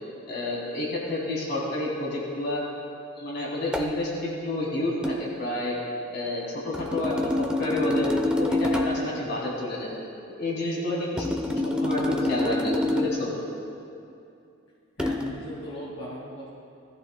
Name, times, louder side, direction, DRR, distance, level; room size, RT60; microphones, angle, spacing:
voice 1, 0.3-2.6 3.2-5.8 6.1-8.1 8.4-9.9 10.4-13.3, left 1 dB, 55° left, -4 dB, 2.7 m, -29 dB
sound 1, 3.7-4.0 5.0-5.2 6.7-9.1 11.2-13.2 15.0-15.3, left 1 dB, 5° right, 0.7 m, -27 dB
voice 2, 15.0-16.5, equal, 90° left, -7 dB, 1.9 m, -38 dB
19.0 x 14.0 x 2.2 m, 2.6 s
head